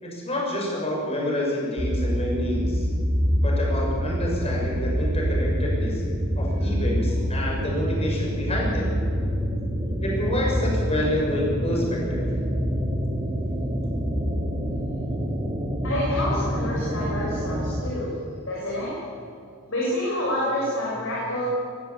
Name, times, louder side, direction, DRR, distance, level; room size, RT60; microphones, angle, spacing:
voice 1, 0.0-2.9 3.4-6.0 6.3-8.9 10.0-12.2, left 1 dB, 30° left, -2 dB, 6.6 m, -28 dB
sound 1, 1.8-17.8, equal, 25° right, 2.9 m, -26 dB
voice 2, 15.8-18.1 18.5-18.9 19.7-21.5, left 1 dB, 65° left, -6 dB, 7.3 m, -28 dB
22.5 x 15.5 x 8.6 m, 2.4 s
head